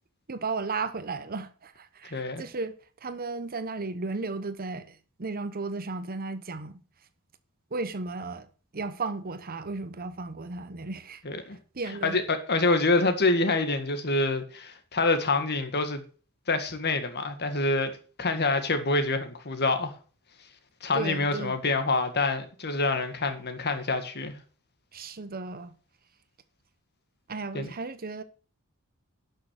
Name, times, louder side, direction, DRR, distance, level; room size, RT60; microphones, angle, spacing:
voice 1, 0.3-2.7 3.0-6.8 7.7-8.5 8.7-11.2 11.7-12.2 20.9-21.6 24.9-25.7 27.3-28.2, right 3 dB, 45° right, 0.9 m, -34 dB
voice 2, 2.1-2.4 11.2-11.6 12.0-16.0 16.5-17.9 18.2-19.9 20.8-24.4 27.5-27.7, left 3 dB, 50° left, 1.8 m, -26 dB
11.5 x 6.4 x 6.5 m
head